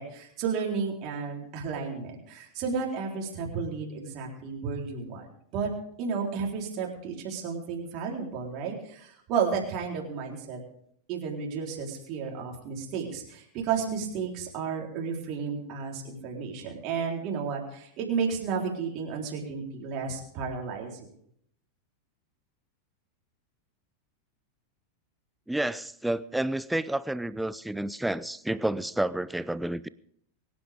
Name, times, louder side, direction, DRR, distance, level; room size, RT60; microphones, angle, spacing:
voice 1, 0.0-5.3 5.5-5.7 6.0-10.6 11.1-21.0, right 5 dB, 40° right, -1 dB, 3.9 m, -32 dB
voice 2, 25.5-29.9, right 1 dB, 5° right, 18 dB, 0.5 m, -30 dB
24.0 x 10.5 x 3.6 m, 0.67 s
figure-of-eight pair, 90°, 0 cm